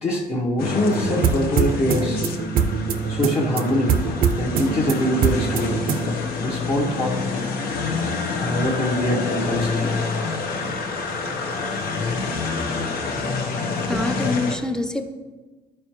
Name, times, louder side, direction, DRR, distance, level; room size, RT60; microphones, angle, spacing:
voice 1, 0.0-2.2 3.1-4.0 4.4-5.8 6.4-7.5 8.4-9.9, left 1 dB, 35° left, -5 dB, 1.2 m, -24 dB
sound 1, 0.6-14.6, left 4 dB, 60° left, 1.1 m, -27 dB
sound 2, 0.9-6.1, right 6 dB, 60° right, 0.7 m, -24 dB
voice 2, 13.9-15.1, left 2 dB, 5° left, 6 dB, 0.6 m, -26 dB
12.5 x 4.5 x 3.1 m, 1.3 s
cardioid pair, 110°, 17 cm